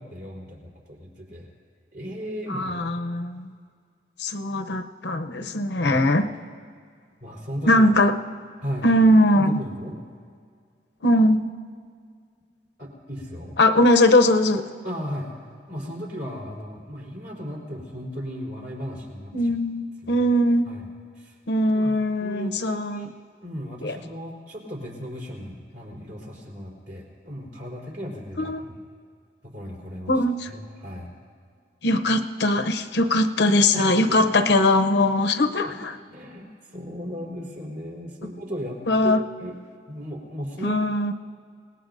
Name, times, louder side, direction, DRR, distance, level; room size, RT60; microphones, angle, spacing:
voice 1, 0.0-1.5 1.9-3.0 5.3-5.5 5.8-6.1 7.2-7.9 8.6-8.9 9.3-10.0 12.8-13.6 14.8-15.3 15.7-19.4 20.0-20.3 20.7-20.9 21.1-21.3 21.7-21.9 22.2-23.1 23.4-28.8 29.4-31.1 33.7-34.4 35.7-35.8 36.1-39.5 39.9-40.8, equal, 60° right, -3 dB, 4.3 m, -36 dB
voice 2, 2.5-3.5 4.2-6.3 7.7-8.2 8.8-9.6 11.0-11.5 13.6-14.7 19.3-20.7 21.5-23.1 23.8-24.0 28.4-28.7 30.1-30.5 31.8-36.0 38.9-39.2 40.6-41.1, left 1 dB, 75° left, 7 dB, 0.8 m, -20 dB
27.5 x 18.5 x 2.7 m, 2.1 s
head